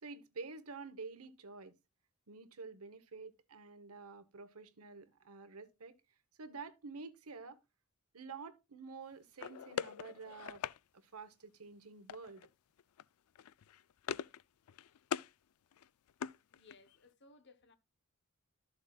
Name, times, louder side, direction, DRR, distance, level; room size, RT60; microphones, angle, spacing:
voice 1, 0.0-1.8 2.3-6.0 6.4-7.6 8.1-10.7 10.9-12.5, right 4 dB, 85° right, 1.1 m, -49 dB
sound 1, 9.4-10.8 12.1-12.5 12.8-13.0 13.3-14.4 14.7-15.3 15.7-17.0, left 8 dB, 85° left, 0.4 m, -42 dB
voice 2, 16.5-17.8, left 3 dB, 55° left, 1.1 m, -62 dB
12.5 x 7.0 x 2.3 m
head